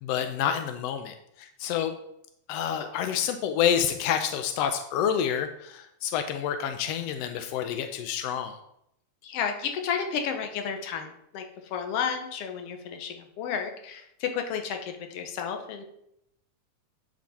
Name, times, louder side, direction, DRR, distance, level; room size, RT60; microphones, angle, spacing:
voice 1, 0.0-1.9 2.5-8.5, left 9 dB, 85° left, 7 dB, 1.5 m, -28 dB
voice 2, 9.2-15.8, left 7 dB, 65° left, 5 dB, 1.7 m, -32 dB
9.1 x 5.2 x 4.2 m, 0.77 s
omnidirectional pair, 3.4 m